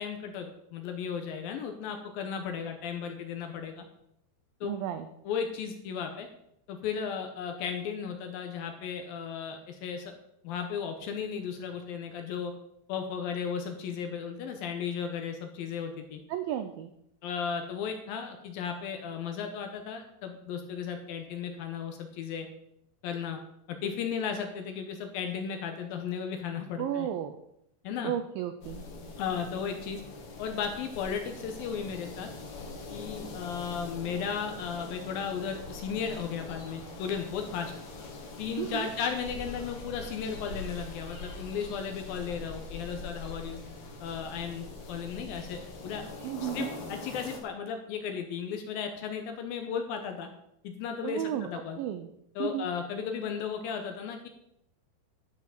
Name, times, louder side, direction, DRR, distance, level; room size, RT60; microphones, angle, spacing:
voice 1, 0.0-3.8 4.6-4.8 5.2-6.3 6.7-10.1 10.4-12.5 12.9-16.2 17.2-22.5 23.0-23.4 23.7-27.1 27.8-28.1 29.2-30.0 30.4-32.3 32.9-37.7 38.4-43.6 44.0-46.0 46.4-50.3 50.6-51.8 52.4-54.3, left 7 dB, 75° left, 5 dB, 2.4 m, -35 dB
voice 2, 4.6-5.1 16.3-16.9 26.8-27.3 28.0-28.8 38.6-38.9 46.2-46.7 51.0-51.5 51.8-52.1 52.4-52.7, right 11 dB, 85° right, 8 dB, 2.0 m, -33 dB
sound 1, 28.6-47.4, left 3 dB, 55° left, 2.5 m, -43 dB
11.5 x 5.7 x 6.0 m, 0.77 s
omnidirectional pair, 4.8 m